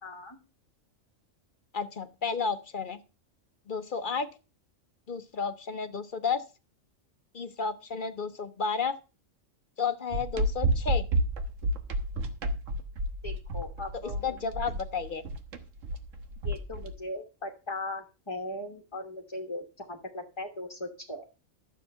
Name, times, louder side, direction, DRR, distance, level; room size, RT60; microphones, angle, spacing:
voice 1, 0.0-0.4 13.2-14.4 16.4-21.2, left 1 dB, 20° left, 2 dB, 1.3 m, -39 dB
voice 2, 1.7-3.0 3.7-4.3 5.1-6.4 7.3-8.9 9.8-11.0 14.2-15.2, left 5 dB, 45° left, 11 dB, 1.0 m, -32 dB
sound 1, 10.1-16.9, right 1 dB, 75° right, 1.6 m, -30 dB
12.0 x 7.3 x 5.6 m, 0.32 s
omnidirectional pair, 1.3 m